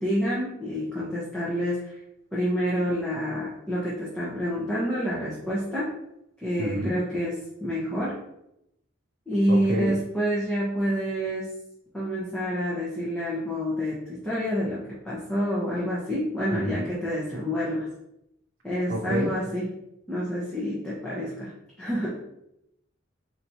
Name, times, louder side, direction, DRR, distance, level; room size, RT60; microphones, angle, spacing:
voice 1, 0.0-1.9 2.3-5.9 6.4-8.1 9.3-11.5 11.9-17.9 18.6-19.7 20.1-21.5 21.8-22.1, equal, 5° left, -9 dB, 0.9 m, -28 dB
voice 2, 6.6-7.0 9.5-10.0 16.5-16.9 18.9-19.3, right 1 dB, 50° right, -4 dB, 0.6 m, -29 dB
4.3 x 3.1 x 2.7 m, 0.82 s
head